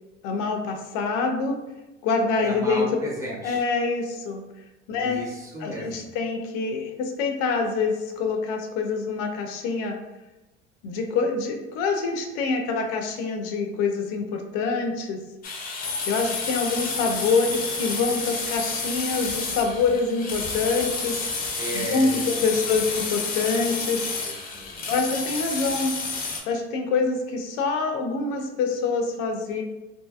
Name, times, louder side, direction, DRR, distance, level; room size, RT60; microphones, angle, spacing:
voice 1, 0.2-1.6 2.0-2.8 3.4-4.4 4.9-5.2 5.6-10.0 10.8-15.2 16.1-21.2 21.7-24.1 24.9-26.0 26.5-29.6, left 4 dB, 75° left, 3 dB, 0.5 m, -25 dB
voice 2, 2.4-3.6 4.9-6.1 21.5-22.7 24.2-24.9 25.5-25.7, right 1 dB, 10° right, -6 dB, 0.9 m, -35 dB
sound 1, 15.4-26.4, left 4 dB, 30° left, 0.6 m, -30 dB
2.7 x 2.6 x 2.3 m, 1.0 s
supercardioid pair, 120°, 29 cm